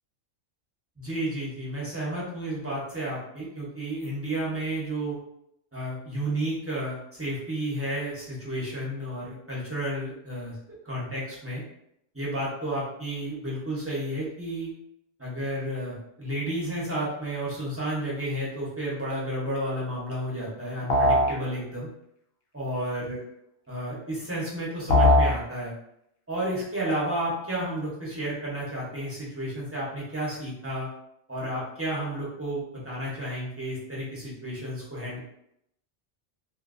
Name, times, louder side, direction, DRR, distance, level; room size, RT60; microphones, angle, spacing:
voice 1, 1.0-5.2 5.7-10.6 10.8-11.6 12.1-14.7 15.2-21.9 22.5-23.2 23.7-25.7 26.3-30.9 31.3-35.2, right 1 dB, 15° right, -7 dB, 0.7 m, -32 dB
sound 1, 20.9-21.4 24.9-25.4, left 1 dB, 65° left, 0.8 m, -19 dB
2.7 x 2.5 x 2.5 m, 0.78 s
omnidirectional pair, 1.3 m